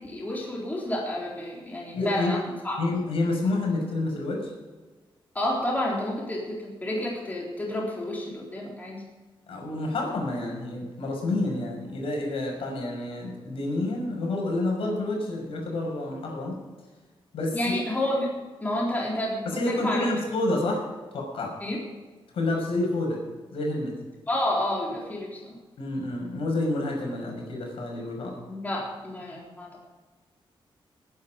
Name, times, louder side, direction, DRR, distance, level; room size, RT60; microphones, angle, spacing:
voice 1, 0.0-2.8 5.3-9.0 17.5-18.3 18.6-20.1 21.6-21.8 24.3-25.6 28.5-29.9, left 1 dB, 15° left, -3 dB, 3.8 m, -30 dB
voice 2, 1.9-2.3 2.8-4.5 9.5-16.6 17.3-17.7 19.4-20.8 21.1-21.5 22.3-23.2 23.5-23.9 25.8-28.4, left 2 dB, 80° left, 0 dB, 6.0 m, -28 dB
21.0 x 10.0 x 5.2 m, 1.3 s
wide cardioid pair, 155°, 9 cm